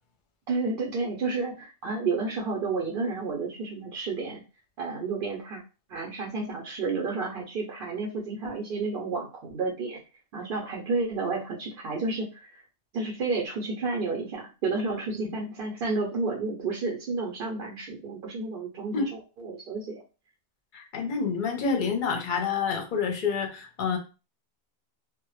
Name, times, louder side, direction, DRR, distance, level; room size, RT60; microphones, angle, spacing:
voice 1, 0.5-4.4 4.8-5.6 5.9-10.0 10.3-12.6 12.9-20.0, right 3 dB, 65° right, -1 dB, 0.7 m, -31 dB
voice 2, 20.7-24.0, left 5 dB, 60° left, 3 dB, 0.7 m, -28 dB
2.1 x 2.0 x 3.0 m, 0.33 s
omnidirectional pair, 1.0 m